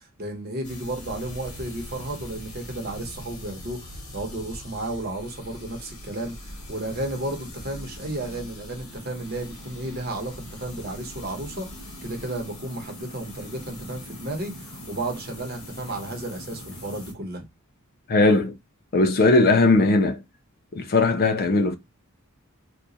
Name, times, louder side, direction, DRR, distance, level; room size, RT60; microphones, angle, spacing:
voice 1, 0.0-17.4, right 1 dB, 45° right, 0.9 m, -33 dB
sound 1, 0.6-17.1, left 1 dB, 80° left, 1.3 m, -41 dB
voice 2, 18.1-18.5 18.9-20.2 20.7-21.8, left 3 dB, 45° left, 0.4 m, -19 dB
2.9 x 2.3 x 3.8 m
head